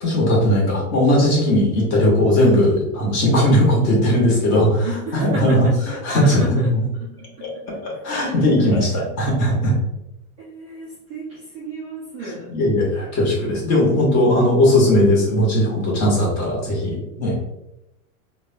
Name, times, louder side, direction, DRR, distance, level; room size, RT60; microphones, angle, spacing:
voice 1, 0.0-5.7 6.0-6.8 7.4-7.5 7.8-9.8 12.5-17.5, left 1 dB, 35° left, -2 dB, 1.3 m, -18 dB
voice 2, 4.8-6.7 7.0-7.1 7.4-7.8 8.2-8.7 8.9-9.1 10.4-12.5, right 3 dB, 20° right, -6 dB, 0.3 m, -33 dB
3.4 x 2.2 x 2.7 m, 0.88 s
hypercardioid pair, 130°, 44 cm